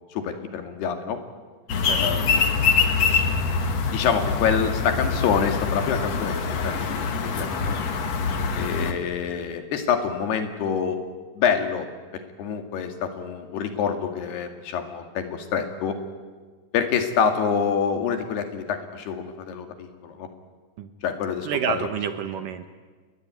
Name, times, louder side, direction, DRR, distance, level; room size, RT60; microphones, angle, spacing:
voice 1, 0.1-1.2 2.0-2.3 3.9-7.8 8.5-11.0 11.4-11.9 12.1-16.0 16.7-20.3 21.0-21.9, left 7 dB, 75° left, 6 dB, 4.1 m, -26 dB
sound 1, 1.7-8.9, left 5 dB, 50° left, 2.5 m, -24 dB
voice 2, 21.4-22.7, right 8 dB, 70° right, 9 dB, 2.3 m, -29 dB
29.0 x 21.5 x 9.4 m, 1.5 s
omnidirectional pair, 4.7 m